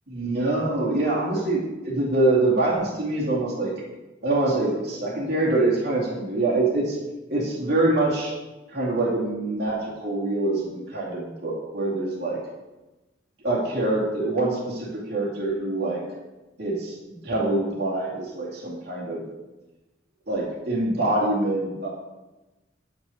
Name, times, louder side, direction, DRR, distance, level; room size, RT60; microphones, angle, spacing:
voice 1, 0.1-3.7 4.2-7.0 7.3-8.3 8.7-12.4 13.4-16.0 16.6-19.2 20.3-21.9, right 2 dB, 55° right, -7 dB, 2.5 m, -25 dB
8.6 x 6.1 x 6.3 m, 1.1 s
head